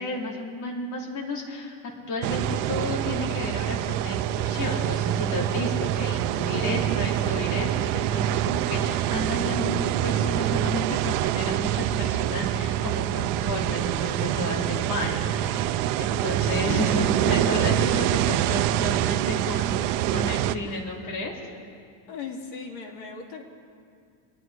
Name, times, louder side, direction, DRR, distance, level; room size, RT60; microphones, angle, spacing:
voice 1, 0.0-1.8 2.1-15.7 16.0-21.5, left 1 dB, 45° left, -1 dB, 2.9 m, -32 dB
sound 1, 2.2-20.6, right 12 dB, 85° right, 0.7 m, -25 dB
voice 2, 6.5-6.9 16.6-16.9 20.6-20.8 22.1-23.4, left 5 dB, 75° left, 0 dB, 3.1 m, -37 dB
sound 2, 13.3-20.6, right 3 dB, 5° right, 0.4 m, -44 dB
24.5 x 10.5 x 4.7 m, 2.2 s
cardioid pair, 180°, 44 cm